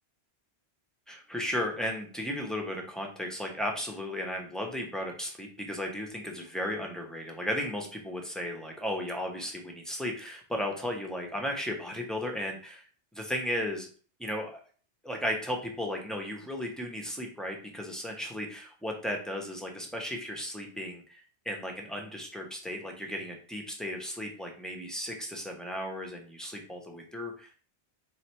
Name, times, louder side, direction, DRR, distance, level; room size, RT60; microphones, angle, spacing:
voice 1, 1.1-12.8 13.1-13.9 14.2-14.6 15.0-21.2 21.4-27.5, equal, ahead, 1 dB, 0.7 m, -35 dB
3.4 x 3.3 x 4.3 m, 0.42 s
omnidirectional pair, 1.1 m